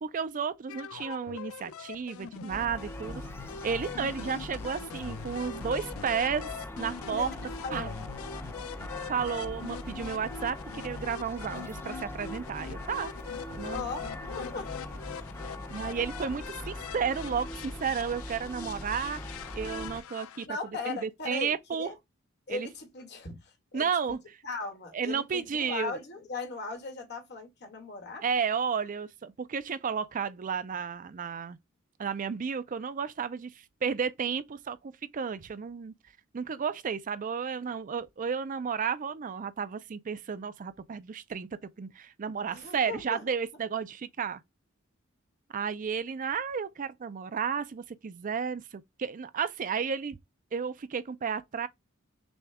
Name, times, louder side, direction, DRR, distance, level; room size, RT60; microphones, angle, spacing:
voice 1, 0.0-3.2 3.6-6.5 6.8-7.3 7.7-7.9 9.1-13.1 13.6-13.8 15.7-20.5 20.9-21.9 22.5-22.7 23.7-24.2 24.9-26.0 28.2-31.6 32.0-35.9 36.3-41.5 41.8-44.4 45.5-50.2 50.5-51.7, right 6 dB, 40° right, 0.4 m, -32 dB
sound 1, 0.7-20.5, left 7 dB, 90° left, 0.4 m, -43 dB
sound 2, 2.5-20.0, left 1 dB, 10° left, 0.6 m, -41 dB
voice 2, 7.6-8.0 13.3-14.9 15.2-15.5 20.5-21.9 22.5-24.2 24.4-28.2 42.5-43.3, left 4 dB, 55° left, 1.6 m, -39 dB
6.2 x 2.3 x 3.4 m
head